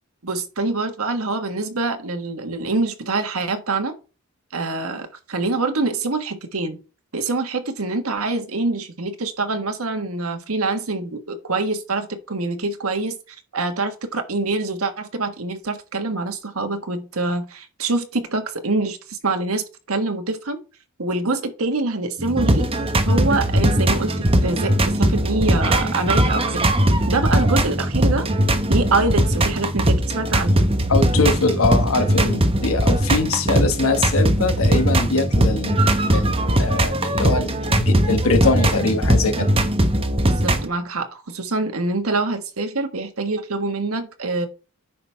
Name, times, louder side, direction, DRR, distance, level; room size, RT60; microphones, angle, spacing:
voice 1, 0.2-3.9 4.5-6.8 7.1-20.6 21.0-22.7 23.0-26.7 27.1-28.3 28.7-30.7 40.2-44.5, right 3 dB, 90° right, 1.5 m, -25 dB
sound 1, 22.2-40.7, right 1 dB, 25° right, 1.1 m, -20 dB
voice 2, 30.9-39.5, left 3 dB, 80° left, 1.4 m, -22 dB
9.3 x 6.0 x 3.4 m
head